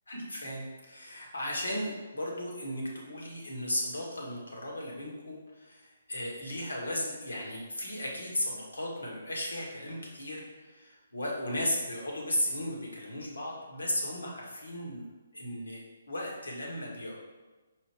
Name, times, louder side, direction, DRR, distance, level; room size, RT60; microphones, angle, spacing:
voice 1, 0.1-15.0 15.3-17.2, left 1 dB, 90° left, -2 dB, 1.9 m, -35 dB
6.1 x 4.2 x 4.6 m, 1.2 s
hypercardioid pair, 145°, 0 cm